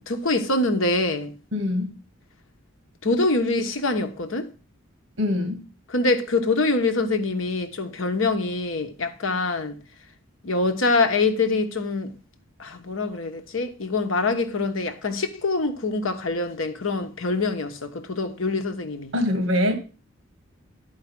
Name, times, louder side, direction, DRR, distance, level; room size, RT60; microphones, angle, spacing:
voice 1, 0.0-1.3 3.0-4.5 5.9-9.8 10.4-12.1 12.6-19.1, left 3 dB, 65° left, 1.0 m, -24 dB
voice 2, 1.5-1.9 5.2-5.6 19.1-19.7, left 1 dB, 60° right, 2.0 m, -23 dB
10.5 x 4.8 x 5.9 m
head